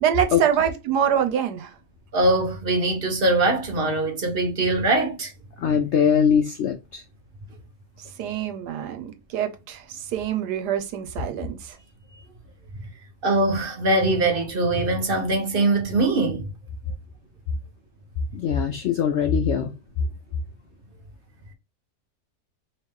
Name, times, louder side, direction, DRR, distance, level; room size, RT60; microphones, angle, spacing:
voice 1, 0.0-1.7 8.2-11.7, right 9 dB, 85° right, 1.3 m, -25 dB
voice 2, 2.1-5.3 13.2-16.5, right 2 dB, 40° right, 1.0 m, -22 dB
voice 3, 5.6-7.0 18.3-19.7, left 7 dB, 70° left, 0.6 m, -21 dB
3.2 x 3.0 x 3.5 m
omnidirectional pair, 1.7 m